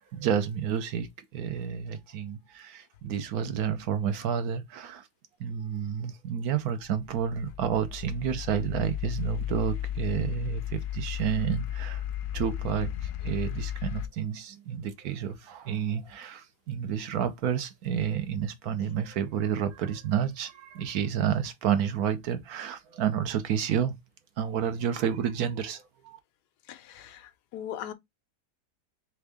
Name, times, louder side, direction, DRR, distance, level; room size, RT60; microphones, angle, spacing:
voice 1, 0.0-5.1 5.4-12.0 12.3-24.0 24.4-26.2, right 8 dB, 70° right, 1.1 m, -30 dB
sound 1, 6.9-14.1, left 11 dB, 65° left, 0.9 m, -34 dB
voice 2, 26.7-27.9, left 10 dB, 85° left, 1.2 m, -40 dB
3.6 x 3.5 x 3.4 m
omnidirectional pair, 1.7 m